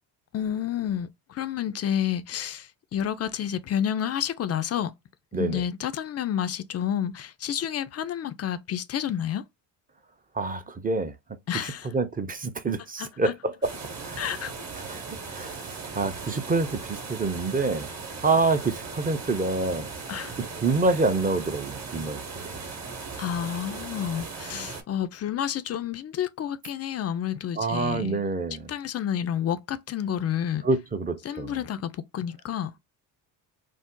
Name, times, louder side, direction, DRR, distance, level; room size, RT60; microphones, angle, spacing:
voice 1, 0.3-4.9 5.4-9.4 11.5-11.9 13.0-13.3 14.2-14.5 20.1-20.4 23.2-28.2 28.7-30.7 31.2-32.7, left 9 dB, 35° left, 0.4 m, -30 dB
voice 2, 10.3-11.1 11.9-13.7 14.0-14.2 14.8-17.9 18.2-19.9 20.4-22.5 27.6-28.7 30.6-31.6, right 3 dB, 20° right, 0.5 m, -27 dB
sound 1, 13.6-24.8, right 4 dB, 35° right, 1.0 m, -38 dB
2.6 x 2.0 x 3.6 m
hypercardioid pair, 60°, 49 cm